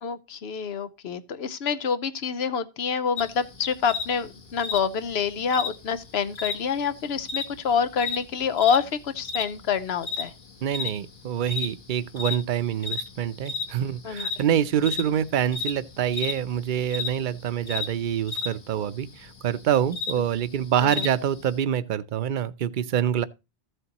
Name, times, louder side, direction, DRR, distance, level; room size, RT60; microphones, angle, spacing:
voice 1, 0.0-10.3 14.0-14.3 20.8-21.1, left 6 dB, 90° left, 1.0 m, -27 dB
sound 1, 3.2-21.6, left 4 dB, 55° left, 1.5 m, -35 dB
voice 2, 10.6-23.3, right 9 dB, 55° right, 0.7 m, -26 dB
14.5 x 7.8 x 2.9 m
omnidirectional pair, 1.0 m